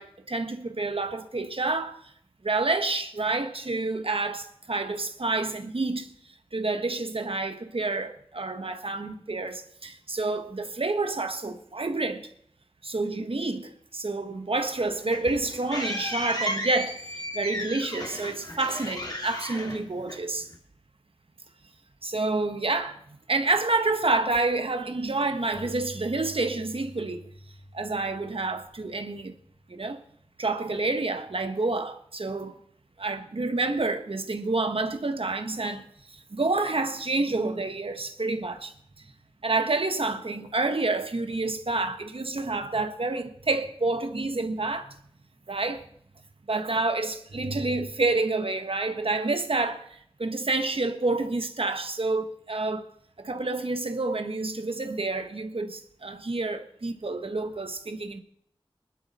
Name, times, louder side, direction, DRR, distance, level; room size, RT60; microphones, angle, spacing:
voice 1, 0.0-2.0 2.4-6.1 6.5-12.3 12.8-20.5 22.0-23.0 23.3-27.3 27.7-29.3 29.7-30.0 30.4-32.6 33.0-39.0 39.4-44.9 45.5-45.8 46.5-52.8 53.2-58.2, right 3 dB, 80° right, 1.4 m, -28 dB
sound 1, 14.7-20.5, left 1 dB, 45° left, 3.0 m, -34 dB
Keyboard (musical), 25.5-30.0, left 1 dB, 60° left, 2.8 m, -48 dB
21.0 x 11.5 x 4.3 m
wide cardioid pair, 55°, 9 cm